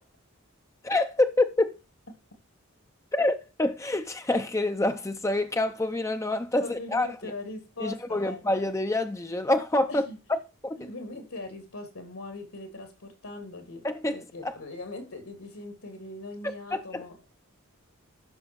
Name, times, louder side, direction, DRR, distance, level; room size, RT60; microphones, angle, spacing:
voice 1, 0.8-1.8 3.1-7.3 7.8-10.8 13.8-14.5 16.7-17.0, left 2 dB, 15° left, 0.6 m, -27 dB
voice 2, 6.6-8.4 9.9-10.2 10.8-13.8 14.1-17.3, left 2 dB, 80° left, 3.2 m, -40 dB
12.0 x 6.1 x 4.7 m
head